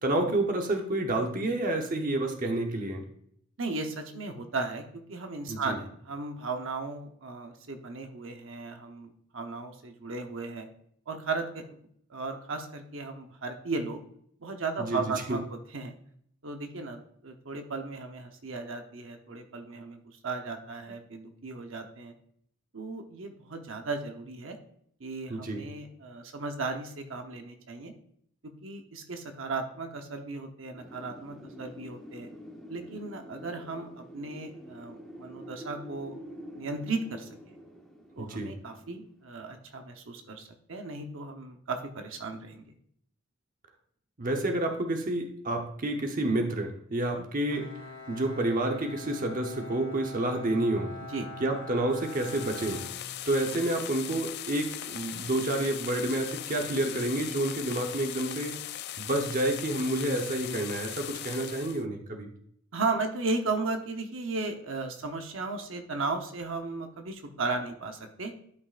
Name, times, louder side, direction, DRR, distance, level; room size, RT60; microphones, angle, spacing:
voice 1, 0.0-3.1 5.5-5.8 14.8-15.0 15.3-15.4 25.3-25.6 38.2-38.5 44.2-47.7 48.1-50.9 51.4-52.8 53.3-58.6 59.0-62.3, right 1 dB, 40° right, 3 dB, 0.9 m, -29 dB
voice 2, 3.6-10.7 11.1-14.0 14.4-15.9 16.4-22.1 22.7-24.6 25.0-27.9 28.4-32.3 32.7-36.1 36.5-37.6 38.2-42.7 47.1-47.3 51.1-51.3 62.7-68.3, right 3 dB, 70° right, 5 dB, 0.9 m, -36 dB
Wind, 30.8-39.5, equal, ahead, 1.1 m, -47 dB
Bowed string instrument, 47.5-53.6, left 2 dB, 75° left, 1.7 m, -44 dB
sound 1, 51.9-61.8, left 12 dB, 55° left, 0.3 m, -39 dB
12.0 x 5.3 x 2.5 m, 0.66 s
head